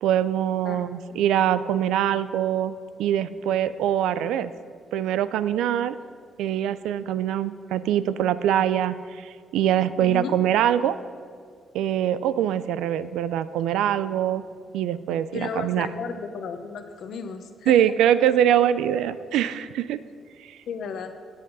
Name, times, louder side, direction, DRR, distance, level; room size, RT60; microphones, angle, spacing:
voice 1, 0.0-4.5 4.9-6.0 6.4-11.0 11.7-14.4 14.7-15.9 17.7-20.0 20.5-20.6, right 10 dB, 90° right, 14 dB, 0.4 m, -23 dB
voice 2, 10.0-10.4 15.3-17.9 20.7-21.1, left 6 dB, 70° left, 7 dB, 1.0 m, -34 dB
17.0 x 7.7 x 4.1 m, 2.1 s
cardioid pair, 90°, 0 cm